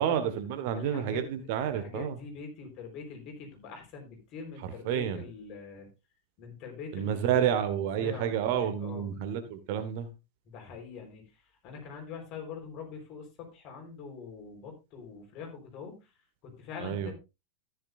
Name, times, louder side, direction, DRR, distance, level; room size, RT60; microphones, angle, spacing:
voice 1, 0.0-2.2 4.6-5.2 6.9-10.1 16.8-17.1, right 9 dB, 50° right, 10 dB, 1.4 m, -30 dB
voice 2, 0.7-1.3 1.6-5.9 6.4-7.6 8.0-9.1 10.5-16.1 16.4-17.1, left 5 dB, 40° left, 2 dB, 4.0 m, -43 dB
14.0 x 9.9 x 2.5 m, 0.26 s
figure-of-eight pair, 90°, 0 cm